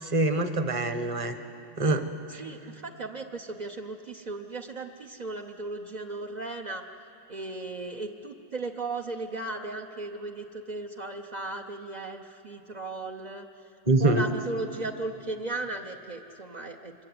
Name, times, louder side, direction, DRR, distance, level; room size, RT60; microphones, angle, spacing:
voice 1, 0.0-1.4 1.8-2.4 13.9-14.3, right 2 dB, 25° right, 8 dB, 0.9 m, -25 dB
voice 2, 2.4-6.8 7.3-13.5 14.0-16.9, right 2 dB, 45° right, 1 dB, 0.5 m, -36 dB
25.5 x 23.0 x 9.6 m, 2.8 s
omnidirectional pair, 2.0 m